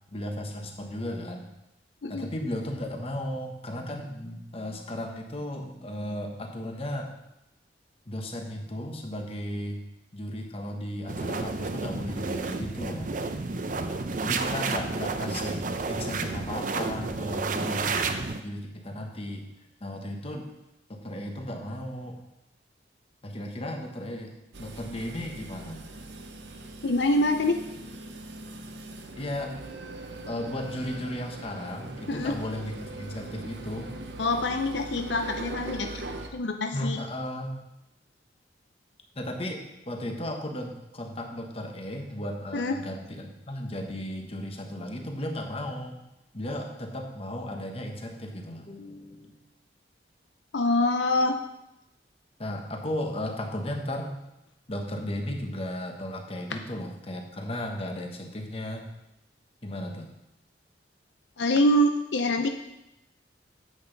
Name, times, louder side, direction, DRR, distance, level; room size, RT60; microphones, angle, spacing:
voice 1, 0.1-1.5 2.1-7.2 8.1-9.8 10.1-13.1 14.2-18.0 18.4-19.5 19.8-20.5 20.9-22.2 23.2-25.8 29.2-29.6 30.3-33.9 36.7-37.6 39.1-46.0 46.3-49.4 52.4-54.2 54.7-58.9 59.6-60.1, left 1 dB, 35° left, 3 dB, 1.2 m, -35 dB
sound 1, 11.1-18.4, right 3 dB, 45° right, 0.6 m, -31 dB
sound 2, 24.5-36.3, right 2 dB, 75° right, 0.9 m, -41 dB
voice 2, 26.8-27.6 32.1-32.3 34.2-35.9 36.3-37.0 42.5-42.8 50.5-51.4 61.4-62.5, left 1 dB, 75° left, 5 dB, 0.6 m, -25 dB
9.6 x 8.0 x 4.0 m, 0.89 s
head